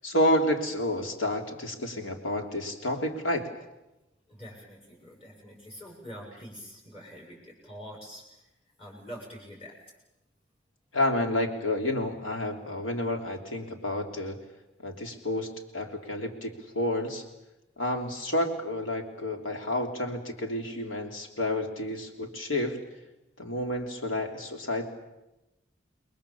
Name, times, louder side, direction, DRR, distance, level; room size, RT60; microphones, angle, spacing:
voice 1, 0.0-3.5 10.9-14.4 14.8-17.2 17.8-22.8 23.4-24.9, left 1 dB, 85° left, 3 dB, 3.4 m, -30 dB
voice 2, 4.3-8.2 8.8-9.7, equal, 30° left, -3 dB, 6.7 m, -45 dB
29.0 x 21.5 x 7.3 m, 0.95 s
head